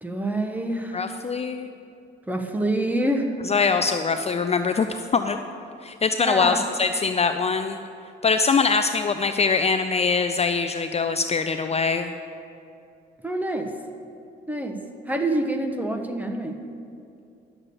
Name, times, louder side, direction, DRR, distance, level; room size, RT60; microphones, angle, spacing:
voice 1, 0.0-1.1 2.3-3.3 6.2-6.6 13.2-13.7 14.5-14.8 15.1-16.6, right 1 dB, 10° right, 4 dB, 1.1 m, -26 dB
voice 2, 0.9-1.7 3.4-5.4 5.8-7.8 8.2-12.1, left 5 dB, 30° left, 8 dB, 0.5 m, -23 dB
11.0 x 7.2 x 6.9 m, 2.6 s
cardioid pair, 90°, 20 cm